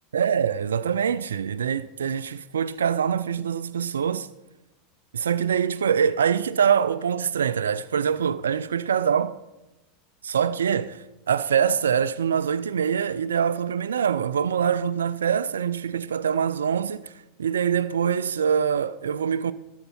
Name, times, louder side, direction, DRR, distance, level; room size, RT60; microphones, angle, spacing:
voice 1, 0.1-4.3 5.1-9.4 10.2-17.1 17.4-19.5, right 7 dB, 80° right, 0.3 m, -24 dB
13.0 x 7.9 x 4.3 m
hypercardioid pair, 85°, 0 cm